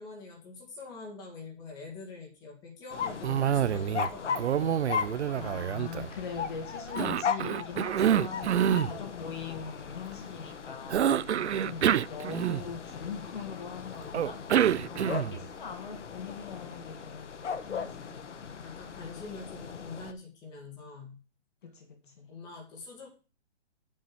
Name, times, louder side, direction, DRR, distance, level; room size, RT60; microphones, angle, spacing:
voice 1, 0.0-4.7 8.6-9.1 11.3-11.7 13.9-14.2 17.8-18.1 18.6-21.2 22.3-23.1, left 4 dB, 10° left, 2.3 m, -45 dB
sound 1, 2.9-20.1, left 6 dB, 85° left, 1.6 m, -38 dB
Cough, 3.2-4.1 4.4-6.4 7.0-8.9 10.9-12.9 14.1-15.4, right 10 dB, 70° right, 0.7 m, -27 dB
voice 2, 5.4-11.1 11.6-18.2 19.0-19.1 21.6-22.3, left 6 dB, 45° left, 1.9 m, -42 dB
8.4 x 5.4 x 7.8 m
hypercardioid pair, 175°, 35 cm